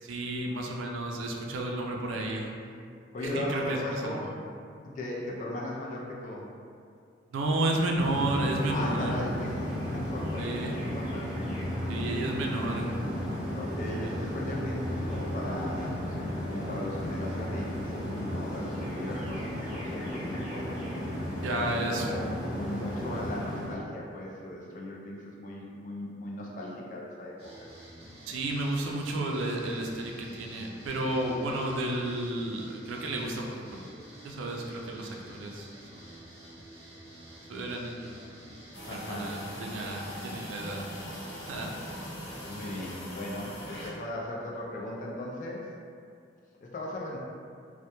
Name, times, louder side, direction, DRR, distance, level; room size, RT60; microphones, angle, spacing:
voice 1, 0.0-2.5 3.2-4.3 7.3-9.2 10.4-10.7 11.9-12.9 14.2-14.3 21.4-22.1 28.3-33.9 34.2-36.1 37.5-38.6 38.8-40.9 41.5-41.7, right 1 dB, 90° right, 0 dB, 0.3 m, -32 dB
voice 2, 3.1-4.3 4.8-6.5 8.7-11.3 13.5-16.2 16.5-19.5 19.7-20.7 21.6-22.3 22.5-27.3 38.9-39.4 42.5-45.7 46.6-47.2, left 1 dB, 40° left, -3 dB, 0.3 m, -37 dB
sound 1, 8.0-23.7, equal, 5° right, 0.5 m, -34 dB
sound 2, 27.4-42.9, right 1 dB, 30° right, 0.9 m, -49 dB
sound 3, 38.7-43.9, equal, 80° left, 0.7 m, -41 dB
2.2 x 2.0 x 2.9 m, 2.3 s
head